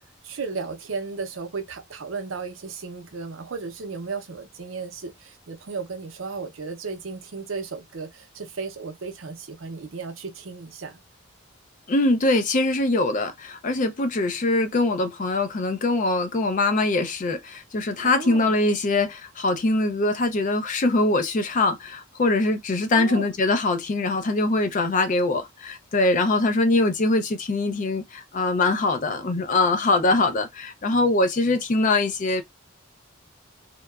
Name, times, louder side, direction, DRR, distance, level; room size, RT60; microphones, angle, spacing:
voice 1, 0.2-11.0 18.0-18.5 22.9-23.3, right 4 dB, 70° right, 0.6 m, -34 dB
voice 2, 11.9-32.4, left 2 dB, 40° left, 0.4 m, -23 dB
2.8 x 2.2 x 2.3 m
head